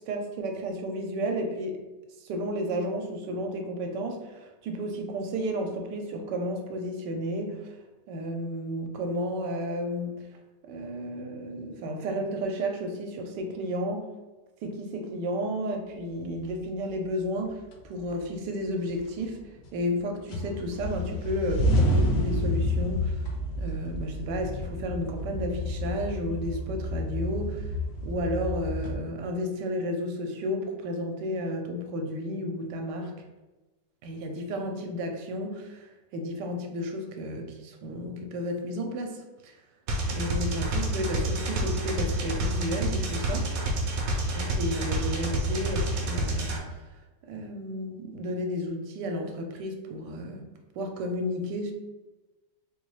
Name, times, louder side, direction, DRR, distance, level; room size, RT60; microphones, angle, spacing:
voice 1, 0.1-1.8 2.2-7.7 8.1-10.2 10.7-14.1 14.6-17.6 17.9-19.4 19.7-23.2 23.6-27.6 28.0-33.1 34.0-35.9 36.1-39.5 40.1-43.5 44.3-46.6 47.3-51.7, equal, 80° right, 3 dB, 1.2 m, -32 dB
sound 1, 17.1-17.2 17.7-18.4 18.8-20.0 20.3-29.0, left 1 dB, 75° left, 1.2 m, -29 dB
sound 2, 39.9-46.6, right 1 dB, 65° right, 1.0 m, -28 dB
4.1 x 2.3 x 3.1 m, 1.1 s
omnidirectional pair, 1.9 m